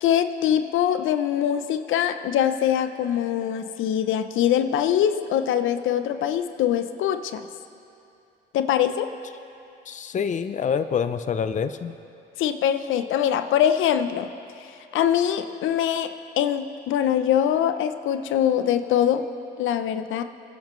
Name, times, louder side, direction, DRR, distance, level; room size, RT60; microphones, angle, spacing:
voice 1, 0.0-7.4 8.5-9.1 12.4-14.3 14.9-19.2 19.6-20.2, left 10 dB, 85° left, 10 dB, 0.6 m, -23 dB
voice 2, 9.9-11.9, left 7 dB, 40° left, 11 dB, 0.5 m, -26 dB
25.0 x 10.5 x 3.1 m, 2.6 s
cardioid pair, 90°, 20 cm